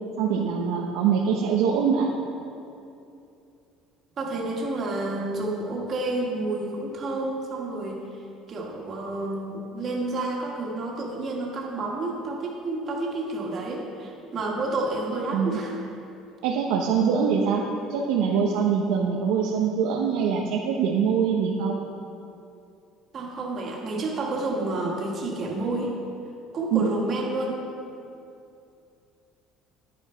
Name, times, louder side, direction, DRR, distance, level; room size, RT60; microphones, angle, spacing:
voice 1, 0.2-2.1 15.3-15.6 16.4-17.6 17.9-21.7 26.7-26.9, right 6 dB, 85° right, -1 dB, 1.0 m, -23 dB
voice 2, 4.2-8.0 8.5-15.8 23.1-26.0 26.5-27.6, right 2 dB, 35° right, -2 dB, 2.0 m, -30 dB
10.5 x 8.9 x 5.8 m, 2.6 s
cardioid pair, 160°, 0 cm